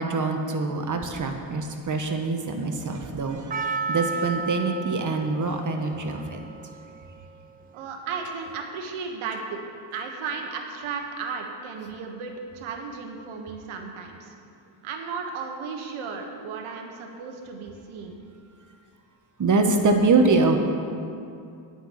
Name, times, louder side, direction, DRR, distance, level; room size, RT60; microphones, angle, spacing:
voice 1, 0.0-6.4 19.4-20.6, right 3 dB, 40° right, 4 dB, 1.2 m, -24 dB
Percussion, 3.5-7.9 8.5-8.6, right 4 dB, 20° right, 0.3 m, -33 dB
voice 2, 7.7-9.6 9.9-14.3 14.8-18.2, right 5 dB, 85° right, 3 dB, 1.3 m, -35 dB
9.0 x 6.1 x 8.5 m, 2.5 s
cardioid pair, 90°, 48 cm